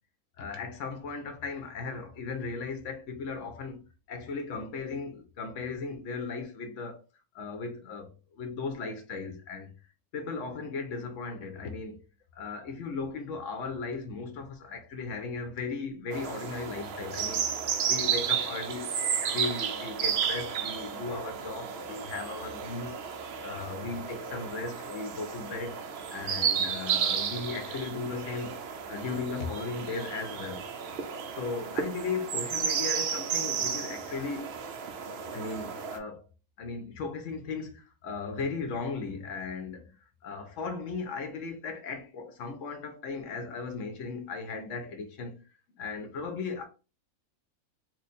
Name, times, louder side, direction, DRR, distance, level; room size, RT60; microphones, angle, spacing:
voice 1, 0.4-3.8 4.1-7.0 7.3-9.7 10.1-12.0 12.3-17.5 17.8-18.9 19.3-23.0 23.4-25.8 26.1-28.6 28.9-30.6 31.3-34.6 35.3-36.2 36.6-45.4 45.7-46.6, left 4 dB, 65° left, 1.0 m, -37 dB
sound 1, 16.1-36.0, right 7 dB, 70° right, 0.6 m, -33 dB
3.1 x 2.1 x 4.1 m
omnidirectional pair, 1.6 m